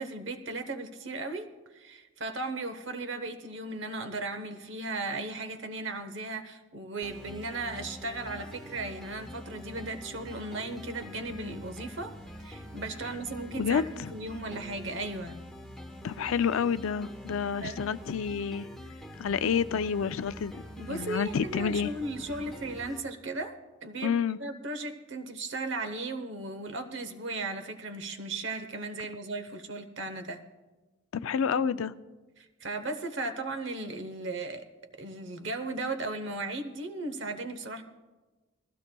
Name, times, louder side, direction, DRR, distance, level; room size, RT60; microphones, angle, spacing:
voice 1, 0.0-1.5 1.7-15.4 17.6-17.9 20.8-24.1 24.4-30.4 32.4-34.7 34.9-37.8, right 2 dB, 65° right, 9 dB, 0.9 m, -36 dB
sound 1, 7.0-23.0, left 1 dB, ahead, 0.9 m, -45 dB
voice 2, 13.6-14.1 16.0-18.7 19.2-20.6 20.9-21.9 24.0-24.4 31.1-31.9, left 7 dB, 85° left, 14 dB, 0.4 m, -29 dB
20.0 x 15.0 x 2.3 m, 1.2 s
head